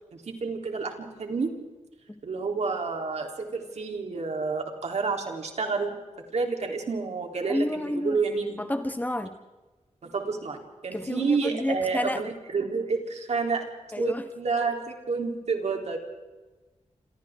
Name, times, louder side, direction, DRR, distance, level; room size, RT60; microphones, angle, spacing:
voice 1, 0.1-1.5 2.2-6.0 6.3-8.6 10.0-13.7 14.0-16.0, right 4 dB, 70° right, 2 dB, 3.5 m, -29 dB
voice 2, 7.5-8.2 8.6-9.4 10.9-12.2 13.9-14.3, left 1 dB, 15° left, 8 dB, 1.4 m, -30 dB
28.0 x 27.0 x 3.7 m, 1.2 s
wide cardioid pair, 90°, 12 cm